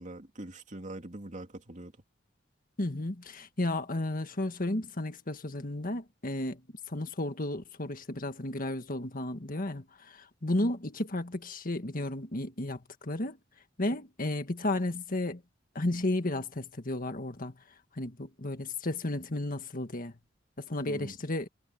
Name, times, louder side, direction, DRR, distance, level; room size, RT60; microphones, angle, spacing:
voice 1, 0.0-2.0 20.8-21.2, right 1 dB, 40° right, 3.0 m, -43 dB
voice 2, 2.8-6.6 6.9-13.4 13.8-15.4 15.8-17.5 18.0-20.1 20.6-21.5, left 1 dB, 50° left, 1.8 m, -33 dB
head